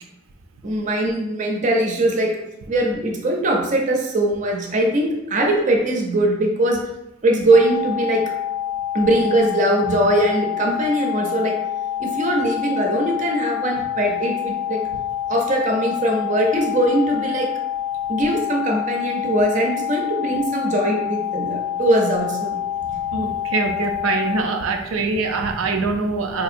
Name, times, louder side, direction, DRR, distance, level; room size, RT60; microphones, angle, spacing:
voice 1, 0.6-2.3 2.7-6.8 7.2-8.2 8.9-11.5 12.0-14.8 15.3-17.5 18.1-22.5, right 1 dB, 40° right, 0 dB, 0.5 m, -21 dB
sound 1, 7.5-24.4, left 10 dB, 35° left, 0.4 m, -27 dB
voice 2, 23.1-26.4, right 3 dB, 90° right, 4 dB, 0.4 m, -23 dB
4.1 x 2.7 x 2.5 m, 0.92 s
head